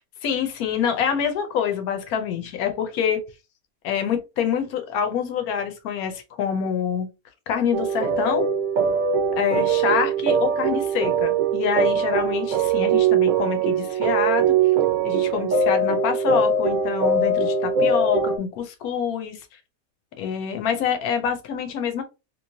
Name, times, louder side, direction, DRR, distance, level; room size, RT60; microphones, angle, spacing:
voice 1, 0.2-3.2 3.8-7.1 7.5-8.5 9.4-14.4 15.0-19.4 20.2-22.0, left 8 dB, 85° left, 1.2 m, -26 dB
sound 1, 7.7-18.4, right 5 dB, 70° right, 1.0 m, -21 dB
3.0 x 2.8 x 2.7 m
omnidirectional pair, 1.5 m